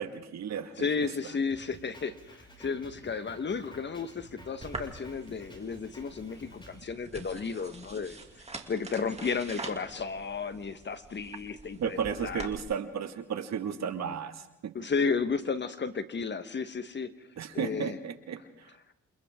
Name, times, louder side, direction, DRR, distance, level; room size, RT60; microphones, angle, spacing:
voice 1, 0.0-1.1 11.8-14.7 17.4-18.4, right 7 dB, 60° right, 7 dB, 2.1 m, -34 dB
voice 2, 0.8-8.2 8.7-12.5 14.7-17.3 17.5-18.0, left 5 dB, 35° left, 11 dB, 1.4 m, -33 dB
Drum kit, 1.5-6.8, equal, 15° left, 6.2 m, -52 dB
sound 1, 4.6-12.6, right 3 dB, 20° right, 2.7 m, -45 dB
28.5 x 27.5 x 3.8 m, 0.88 s
cardioid pair, 90°, 30 cm